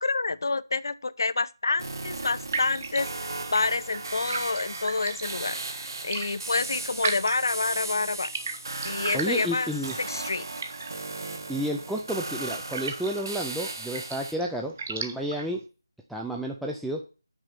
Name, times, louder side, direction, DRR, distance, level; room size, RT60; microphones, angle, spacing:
voice 1, 0.0-8.3 8.8-9.7 10.0-10.5, left 3 dB, 60° left, 0.6 m, -28 dB
sound 1, 1.7-15.6, right 5 dB, 30° right, 0.8 m, -39 dB
sound 2, 1.8-14.3, right 2 dB, 60° right, 1.9 m, -37 dB
voice 2, 9.1-10.0 11.5-15.6 16.1-17.0, equal, ahead, 0.3 m, -31 dB
6.1 x 5.5 x 6.6 m
figure-of-eight pair, 170°, 2 cm